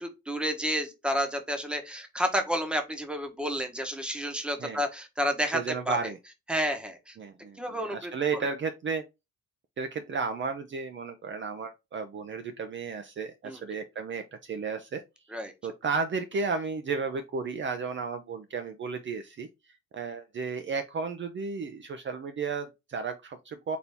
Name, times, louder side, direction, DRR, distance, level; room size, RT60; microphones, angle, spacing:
voice 1, 0.0-6.0 6.5-7.2 7.6-8.1 13.4-13.6 15.3-15.5, equal, 5° right, 1.0 m, -30 dB
voice 2, 5.5-6.2 7.2-9.0 9.8-15.0 15.6-23.8, right 5 dB, 40° right, 0.6 m, -33 dB
4.2 x 2.7 x 3.5 m
cardioid pair, 90°, 30 cm